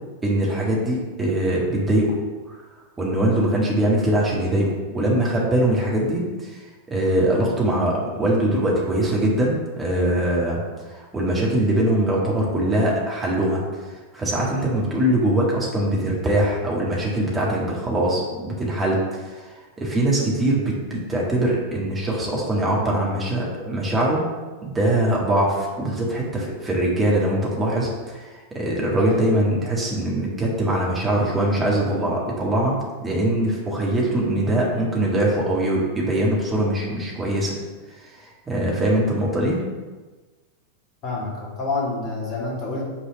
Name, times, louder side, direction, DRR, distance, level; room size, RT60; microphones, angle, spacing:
voice 1, 0.2-2.2 2.5-2.6 3.0-13.6 14.1-24.2 24.6-32.8 33.0-37.6 37.9-39.6, right 1 dB, 15° right, -3 dB, 1.7 m, -22 dB
voice 2, 28.9-29.2 41.0-42.8, left 3 dB, 40° left, -4 dB, 2.1 m, -28 dB
6.0 x 4.1 x 5.8 m, 1.3 s
figure-of-eight pair, 90°, 0 cm